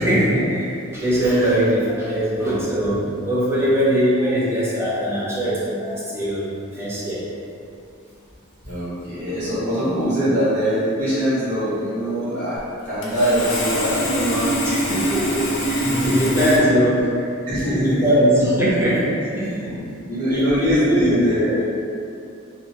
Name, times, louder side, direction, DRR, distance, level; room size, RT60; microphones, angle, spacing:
voice 1, 0.0-7.2 14.6-17.0 17.7-19.9 20.3-21.6, equal, 10° right, -9 dB, 0.6 m, -21 dB
voice 2, 8.7-15.2 15.8-16.5 17.1-18.0 20.1-21.6, equal, 50° right, -18 dB, 1.3 m, -23 dB
Sawing, 13.0-16.6, equal, 65° left, 0.6 m, -23 dB
2.7 x 2.5 x 2.8 m, 2.5 s
head